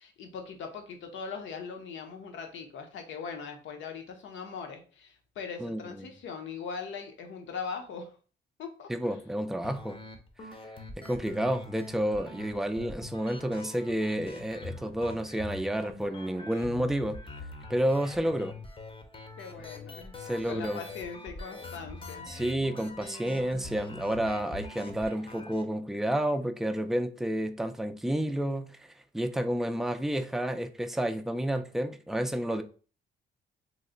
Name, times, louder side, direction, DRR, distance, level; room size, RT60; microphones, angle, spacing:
voice 1, 0.0-8.1 8.6-9.2 19.4-20.1 20.4-22.3, left 5 dB, 75° left, 0.8 m, -40 dB
voice 2, 5.6-6.1 8.9-10.0 11.0-17.2 17.7-18.5 20.2-20.8 22.3-28.8 29.1-32.6, right 1 dB, ahead, 0.3 m, -30 dB
sound 1, 9.6-25.6, left 3 dB, 25° left, 0.7 m, -44 dB
3.1 x 2.1 x 3.7 m
cardioid pair, 90°, 20 cm